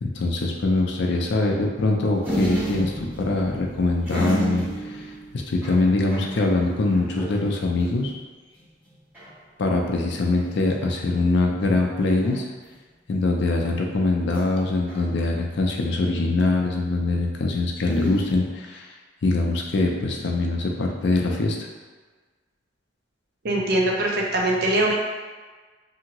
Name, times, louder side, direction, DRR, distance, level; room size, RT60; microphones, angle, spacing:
voice 1, 0.0-5.1 5.3-8.1 9.6-12.5 13.1-18.9 19.2-21.6, left 2 dB, 65° left, 1 dB, 0.4 m, -23 dB
sound 1, 2.2-8.2 8.6-8.7 8.9-9.4 10.3-10.8 12.2-12.7 14.3-15.6 17.9-18.3, right 1 dB, 10° right, 1.2 m, -32 dB
voice 2, 23.4-24.9, right 1 dB, 55° right, -1 dB, 0.5 m, -22 dB
2.8 x 2.6 x 2.9 m, 1.4 s
head